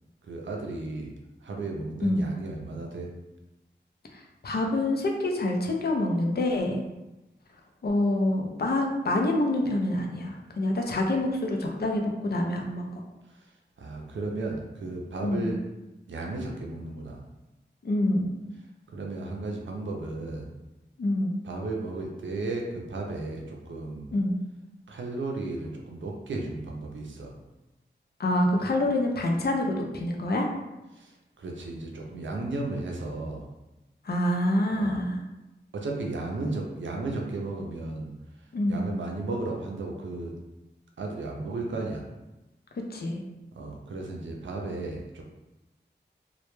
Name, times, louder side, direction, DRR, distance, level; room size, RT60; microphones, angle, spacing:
voice 1, 0.2-1.1 1.4-3.1 13.3-13.5 13.8-15.6 16.1-17.2 18.9-20.5 21.4-24.1 24.9-27.4 30.9-33.5 34.7-35.0 35.7-38.1 38.7-40.3 41.0-42.0 43.5-45.2, right 2 dB, 90° right, 0 dB, 0.4 m, -34 dB
voice 2, 4.1-6.8 7.8-12.9 15.2-15.5 17.8-18.4 21.0-21.4 24.1-24.4 28.2-30.5 34.0-35.2 38.5-38.9 42.7-43.2, left 1 dB, 55° left, 1 dB, 0.5 m, -26 dB
2.1 x 2.1 x 3.0 m, 1.0 s
wide cardioid pair, 50°, 19 cm